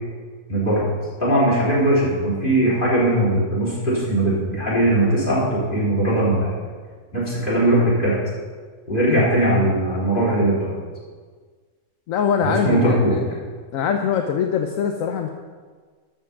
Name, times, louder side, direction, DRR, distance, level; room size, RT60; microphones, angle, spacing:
voice 1, 0.5-0.9 1.2-6.5 7.1-8.2 8.9-10.7 12.4-13.2, right 1 dB, 35° left, -7 dB, 3.9 m, -19 dB
voice 2, 12.1-13.3 13.7-15.3, left 7 dB, 75° left, 4 dB, 1.1 m, -23 dB
12.5 x 4.6 x 7.3 m, 1.5 s
omnidirectional pair, 1.4 m